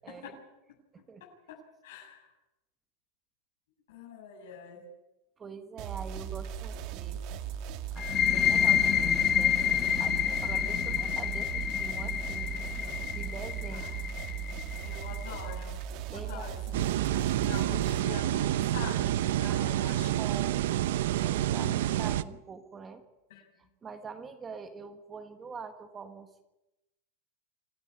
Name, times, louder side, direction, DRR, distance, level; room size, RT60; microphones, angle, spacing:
voice 1, 0.0-0.3 0.9-1.2 5.4-7.4 7.9-13.9 16.1-16.5 19.4-20.6 21.1-21.7 21.9-23.0 23.8-26.4, right 5 dB, 15° right, 7 dB, 1.6 m, -45 dB
voice 2, 1.2-1.6 1.8-2.3 3.9-4.9 13.7-13.9 14.8-15.8 16.1-20.2 21.5-21.7 23.3-23.5, left 6 dB, 75° left, -2 dB, 7.3 m, -44 dB
sound 1, 5.8-18.0, right 8 dB, 40° right, 1.6 m, -38 dB
sound 2, 8.0-15.4, left 9 dB, 25° left, 1.4 m, -28 dB
sound 3, 16.7-22.2, right 13 dB, 65° right, 0.8 m, -28 dB
26.5 x 15.5 x 9.8 m, 0.94 s
supercardioid pair, 175°, 0 cm